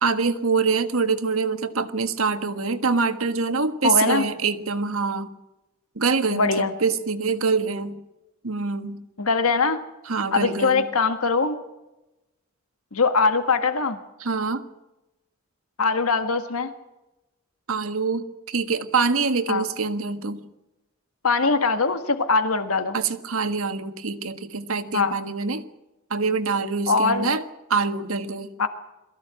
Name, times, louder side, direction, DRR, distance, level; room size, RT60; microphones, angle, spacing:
voice 1, 0.0-5.3 5.9-8.0 8.4-9.0 10.1-10.8 14.2-14.6 17.7-20.4 22.9-25.6 26.1-27.4 27.7-28.5, right 4 dB, 75° right, 10 dB, 1.5 m, -25 dB
voice 2, 3.8-4.2 6.3-6.7 9.2-9.8 10.3-11.5 12.9-14.0 15.8-16.7 19.5-19.6 21.2-23.0 24.9-25.1 26.9-27.3 28.6-28.7, left 4 dB, 85° left, 9 dB, 1.6 m, -22 dB
22.5 x 15.0 x 8.9 m, 0.99 s
head